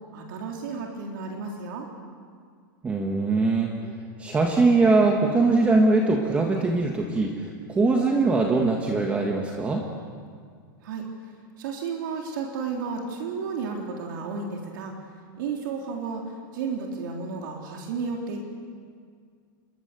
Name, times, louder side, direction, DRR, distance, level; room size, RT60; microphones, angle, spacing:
voice 1, 0.1-1.9 10.8-11.1 11.6-14.9 15.4-18.4, right 5 dB, 65° right, 0 dB, 3.6 m, -32 dB
voice 2, 2.8-3.9 4.2-9.8, right 3 dB, 10° right, 1 dB, 1.5 m, -22 dB
28.0 x 22.0 x 6.9 m, 2.1 s
supercardioid pair, 165°, 11 cm